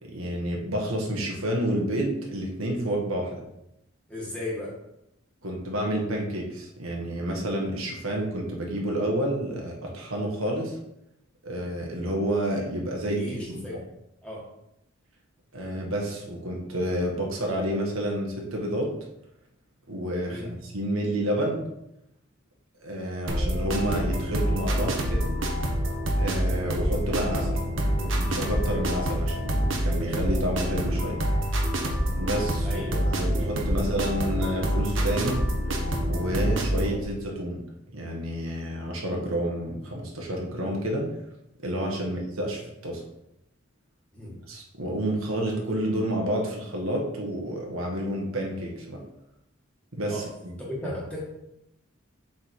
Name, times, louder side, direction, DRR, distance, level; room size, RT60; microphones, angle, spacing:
voice 1, 0.0-3.4 5.4-10.8 11.4-13.6 15.5-18.9 19.9-21.7 22.8-25.4 26.2-27.5 28.0-31.2 32.2-35.4 36.0-37.6 37.9-41.1 41.6-43.0 44.5-49.0 49.9-50.5, right 1 dB, 85° right, -1 dB, 1.7 m, -29 dB
voice 2, 4.1-4.7 13.1-13.8 14.2-14.4 20.3-20.5 32.6-33.1 33.7-33.9 42.0-42.2 44.1-44.4 50.1-50.3 50.6-51.2, left 1 dB, 5° left, -5 dB, 1.8 m, -36 dB
sound 1, 23.3-37.0, equal, 65° right, 1.2 m, -26 dB
7.3 x 3.8 x 4.8 m, 0.84 s
head